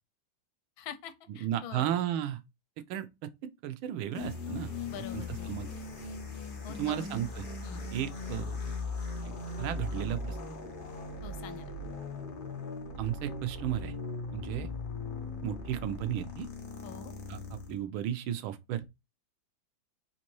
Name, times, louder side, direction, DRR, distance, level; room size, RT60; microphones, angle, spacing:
voice 1, 0.8-1.9 4.9-5.6 6.6-7.1 7.6-7.9 11.2-11.7 16.8-17.1, left 8 dB, 85° left, 1.4 m, -45 dB
voice 2, 1.4-2.4 2.9-3.3 3.6-4.7 5.1-5.7 6.8-7.5 7.9-8.6 9.2-9.3 9.6-10.6 13.0-13.9 14.3-14.7 15.4-16.5 17.3-17.4 17.7-18.9, right 11 dB, 90° right, 1.4 m, -34 dB
sound 1, 4.1-17.8, left 3 dB, 55° left, 0.6 m, -39 dB
4.1 x 2.6 x 2.9 m
omnidirectional pair, 2.2 m